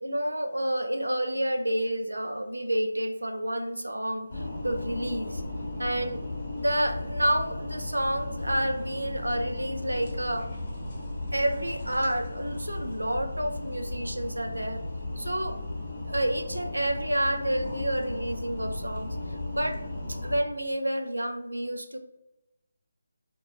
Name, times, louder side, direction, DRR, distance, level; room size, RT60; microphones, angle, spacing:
voice 1, 0.0-5.4 5.8-6.2 6.5-10.5 11.3-14.8 15.2-15.6 16.0-19.2 19.5-19.8 20.1-22.0, right 1 dB, 90° right, 6 dB, 0.3 m, -29 dB
sound 1, 4.3-20.4, left 2 dB, 40° left, 0.7 m, -35 dB
2.2 x 2.1 x 2.8 m, 0.92 s
figure-of-eight pair, 155°, 0 cm